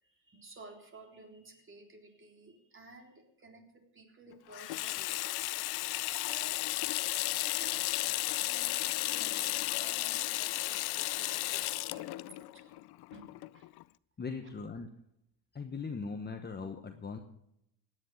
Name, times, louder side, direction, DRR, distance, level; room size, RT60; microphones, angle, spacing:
voice 1, 0.0-5.3 6.1-6.6 7.4-12.8 13.1-13.7, right 2 dB, 25° right, 3 dB, 3.6 m, -54 dB
Water tap faucet / Sink (filling or washing), 4.5-13.8, left 19 dB, 55° left, 0.5 m, -34 dB
voice 2, 14.2-14.9 15.5-17.2, left 4 dB, 20° left, 5 dB, 1.2 m, -39 dB
17.5 x 10.0 x 6.5 m, 0.77 s
cardioid pair, 130°, 49 cm